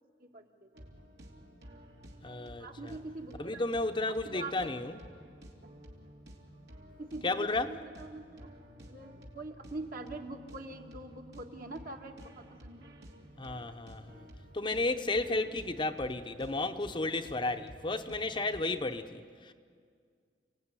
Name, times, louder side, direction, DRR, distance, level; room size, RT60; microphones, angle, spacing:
voice 1, 0.2-0.8 2.6-3.6 4.1-4.7 7.0-8.5 8.9-12.9 13.7-13.8 14.6-14.7, right 2 dB, 55° right, 1.9 m, -44 dB
sound 1, 0.7-18.9, equal, 70° right, 3.2 m, -52 dB
voice 2, 2.2-2.9 3.4-5.0 7.2-7.7 13.4-14.3 14.5-19.5, left 2 dB, 25° left, 0.8 m, -33 dB
29.5 x 17.5 x 9.8 m
head